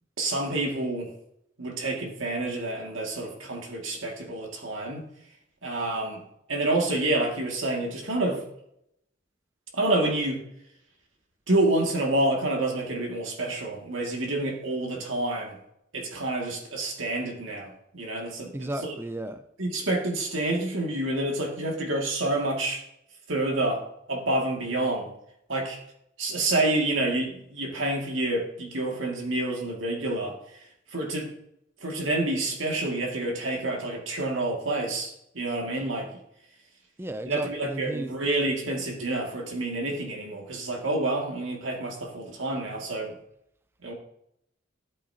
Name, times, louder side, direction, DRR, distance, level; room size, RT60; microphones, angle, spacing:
voice 1, 0.2-1.1 1.6-5.0 5.6-6.2 6.5-8.4 9.7-10.4 11.5-15.6 15.9-18.9 19.6-22.8 23.3-23.8 24.1-25.1 25.5-25.8 26.2-30.4 30.9-31.3 31.8-36.1 37.3-43.1 43.8-43.9, right 2 dB, 90° right, 1 dB, 2.3 m, -28 dB
voice 2, 18.5-19.4 37.0-38.1, right 1 dB, 10° right, 9 dB, 0.4 m, -34 dB
12.0 x 8.3 x 2.9 m, 0.77 s
head